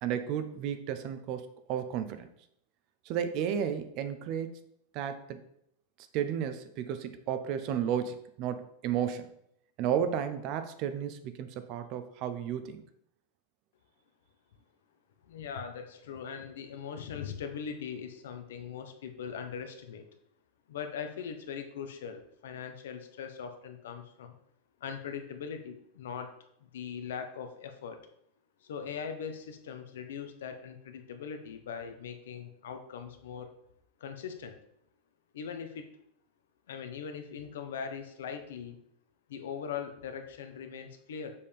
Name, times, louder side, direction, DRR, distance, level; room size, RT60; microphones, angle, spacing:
voice 1, 0.0-2.3 3.1-4.6 4.9-5.4 6.1-9.3 9.8-12.8, right 9 dB, 35° right, 10 dB, 0.5 m, -33 dB
voice 2, 15.2-20.1 20.7-24.3 24.8-26.3 26.6-28.0 28.6-33.5 34.0-34.6 35.3-35.9 36.7-38.8 39.3-41.3, left 7 dB, 90° left, 6 dB, 1.0 m, -40 dB
6.8 x 5.5 x 3.4 m, 0.75 s
supercardioid pair, 175°, 0 cm